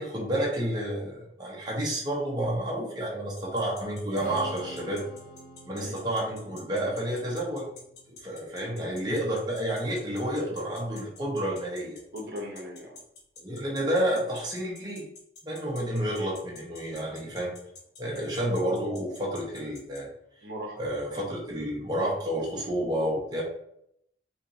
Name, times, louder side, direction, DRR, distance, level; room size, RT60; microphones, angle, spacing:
voice 1, 0.0-5.0 5.7-7.7 8.2-12.0 13.4-15.0 15.4-17.5 18.0-20.1 20.8-23.4, right 1 dB, 25° right, -4 dB, 1.0 m, -30 dB
sound 1, 3.4-20.0, left 3 dB, 75° left, 0.9 m, -48 dB
Strum, 4.1-10.4, right 1 dB, 45° left, 0.8 m, -49 dB
voice 2, 12.1-13.0 18.1-18.3 20.4-20.8, equal, 65° right, -1 dB, 0.8 m, -39 dB
4.1 x 3.0 x 2.7 m, 0.74 s
head